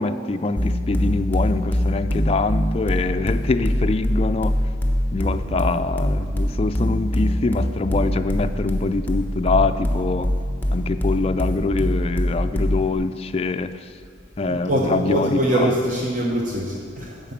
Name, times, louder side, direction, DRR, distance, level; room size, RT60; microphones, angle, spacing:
voice 1, 0.0-4.6 5.1-10.3 10.7-13.9 14.4-15.7, left 3 dB, 30° left, 10 dB, 0.3 m, -24 dB
sound 1, 0.6-12.9, left 1 dB, 10° left, 0.9 m, -23 dB
voice 2, 14.4-17.3, right 1 dB, 45° right, -2 dB, 0.9 m, -23 dB
11.0 x 5.1 x 7.2 m, 2.3 s
head